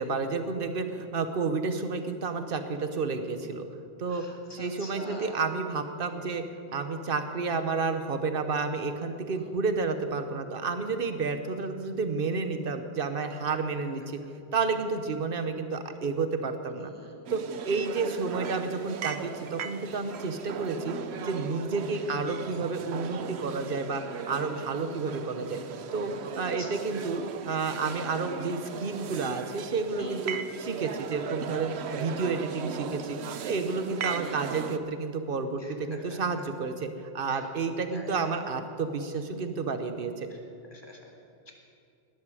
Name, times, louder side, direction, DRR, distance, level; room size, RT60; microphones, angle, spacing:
voice 1, 0.0-3.6 4.0-4.2 4.5-6.4 6.7-14.2 14.5-16.9 17.3-21.0 21.2-25.6 25.9-33.2 33.4-40.3, right 4 dB, 60° right, 8 dB, 1.1 m, -30 dB
voice 2, 4.1-5.4 9.4-9.5 16.9-17.3 22.1-22.2 26.6-26.7 30.0-30.2 34.1-34.5 35.6-36.2 37.3-37.4 37.9-38.3 40.7-41.1 41.5-41.6, left 1 dB, 25° left, 0 dB, 2.0 m, -46 dB
sound 1, 17.3-34.8, right 7 dB, 80° right, 1.0 m, -38 dB
18.5 x 12.5 x 5.0 m, 2.5 s
omnidirectional pair, 1.1 m